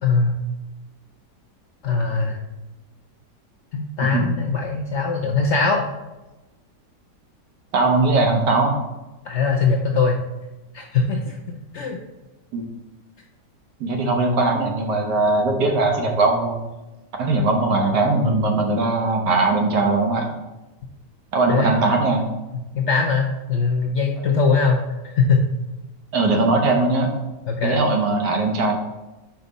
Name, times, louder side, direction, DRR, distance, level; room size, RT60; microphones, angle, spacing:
voice 1, 0.0-0.4 1.8-2.4 3.7-5.9 9.2-10.2 10.7-11.4 11.7-12.0 21.5-21.7 22.5-25.4 27.4-27.8, left 4 dB, 65° left, 2 dB, 0.7 m, -21 dB
voice 2, 7.7-8.7 12.5-12.6 13.8-16.6 17.2-20.3 21.3-22.3 26.1-27.1 27.6-28.7, right 3 dB, 80° right, 2 dB, 1.7 m, -20 dB
5.5 x 4.7 x 4.0 m, 1.0 s
omnidirectional pair, 1.8 m